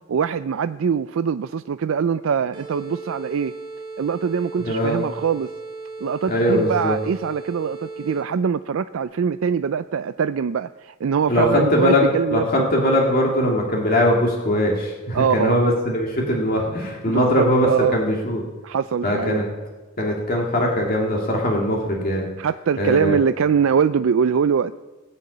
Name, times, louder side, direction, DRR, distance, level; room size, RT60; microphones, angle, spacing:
voice 1, 0.1-3.5 4.0-5.5 6.0-12.7 15.1-15.5 17.1-18.0 18.6-19.4 22.4-24.7, right 6 dB, 70° right, 12 dB, 0.4 m, -23 dB
sound 1, 2.5-8.5, right 3 dB, 25° right, 2.7 m, -36 dB
voice 2, 4.6-5.0 6.3-7.0 11.3-18.4 19.0-19.5 20.0-22.3 22.8-23.2, left 1 dB, 45° left, -1 dB, 2.2 m, -21 dB
19.0 x 6.9 x 8.5 m, 1.2 s
head